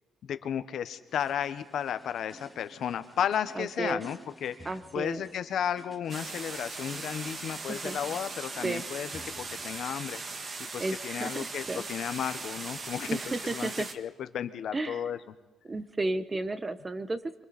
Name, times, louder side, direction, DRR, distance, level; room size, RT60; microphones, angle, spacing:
voice 1, 0.2-9.1 9.4-13.2 13.5-15.2, left 9 dB, 70° left, 11 dB, 1.2 m, -34 dB
sound 1, 1.1-10.0, equal, ahead, 2.2 m, -53 dB
voice 2, 3.5-4.0 4.6-5.2 7.5-8.0 8.6-8.8 10.8-11.8 13.1-13.9 14.7-15.0 15.7-17.4, right 2 dB, 25° right, 12 dB, 1.1 m, -33 dB
sound 2, 6.1-13.9, right 3 dB, 40° right, 1.9 m, -39 dB
25.5 x 24.5 x 4.3 m, 1.2 s
cardioid pair, 90°, 0 cm